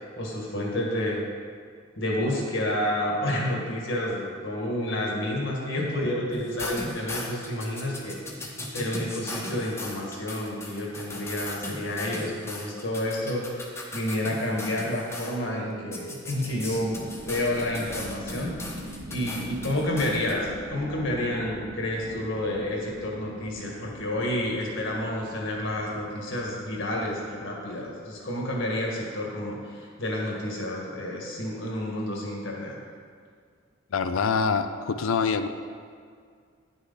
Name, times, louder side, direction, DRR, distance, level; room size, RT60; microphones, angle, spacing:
voice 1, 0.2-1.2 2.0-8.2 8.7-13.6 13.9-17.0 17.3-32.8, left 1 dB, 65° left, -2 dB, 1.8 m, -30 dB
Dog, 3.8-5.3 5.7-10.8 11.8-17.0, right 2 dB, 45° right, 1.7 m, -47 dB
sound 1, 6.3-15.4 15.9-20.3, left 2 dB, 15° left, 0.9 m, -37 dB
sound 2, 16.3-28.6, equal, 60° right, 0.9 m, -43 dB
voice 2, 33.9-35.5, left 5 dB, 80° left, 9 dB, 0.5 m, -25 dB
9.7 x 6.2 x 4.0 m, 2.1 s
head